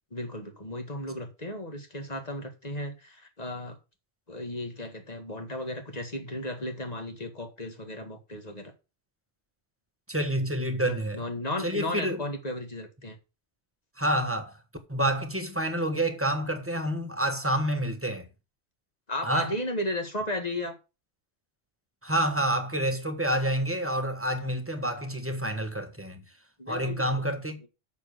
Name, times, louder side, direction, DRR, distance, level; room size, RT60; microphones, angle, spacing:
voice 1, 0.1-3.8 4.3-8.7 10.8-13.2 19.1-20.8 26.6-27.3, left 1 dB, 35° left, 2.0 m, -35 dB
voice 2, 10.1-11.2 11.6-12.2 14.0-14.5 14.9-18.3 19.2-19.5 22.0-26.2 26.7-27.6, right 1 dB, 10° right, 1.3 m, -28 dB
6.9 x 6.6 x 6.6 m
omnidirectional pair, 1.2 m